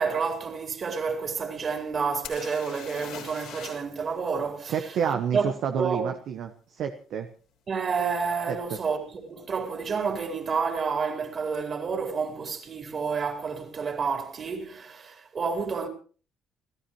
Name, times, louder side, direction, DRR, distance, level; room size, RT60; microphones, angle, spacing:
voice 1, 0.0-5.0 5.3-6.1 7.7-15.9, right 5 dB, 45° right, 4.3 m, -29 dB
sound 1, 2.2-4.0 4.2-4.3 7.7-7.8 8.5-8.7 8.9-9.5 11.5-11.6 11.9-12.0, left 8 dB, 75° left, 4.6 m, -42 dB
voice 2, 4.7-7.3 8.5-8.8, right 7 dB, 60° right, 1.1 m, -29 dB
29.5 x 14.0 x 3.1 m
hypercardioid pair, 50°, 0 cm